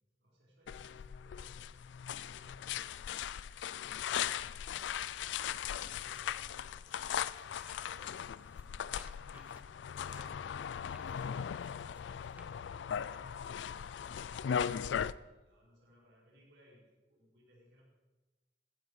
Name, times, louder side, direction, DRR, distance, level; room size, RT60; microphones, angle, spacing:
voice 1, 0.2-1.7 2.2-3.6 4.3-8.1 8.5-9.7 12.5-17.8, equal, 70° right, -4 dB, 4.5 m, -65 dB
sound 1, 0.7-15.1, left 8 dB, 85° left, 0.3 m, -38 dB
sound 2, 4.4-8.0 8.3-13.0 13.7-13.8, right 1 dB, 10° right, 1.1 m, -63 dB
14.5 x 9.6 x 4.8 m, 1.1 s
head